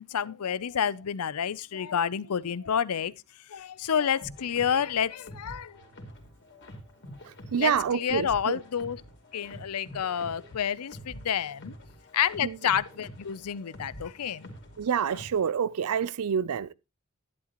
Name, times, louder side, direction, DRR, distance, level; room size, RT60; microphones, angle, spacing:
voice 1, 0.0-3.1 3.5-5.8 7.6-9.0 9.3-11.7 12.1-14.5, left 8 dB, 90° left, 0.5 m, -29 dB
sound 1, 4.2-15.5, equal, 55° left, 2.8 m, -47 dB
voice 2, 7.5-8.6 12.4-12.6 14.8-16.7, right 7 dB, 85° right, 0.5 m, -27 dB
11.0 x 11.0 x 2.9 m
head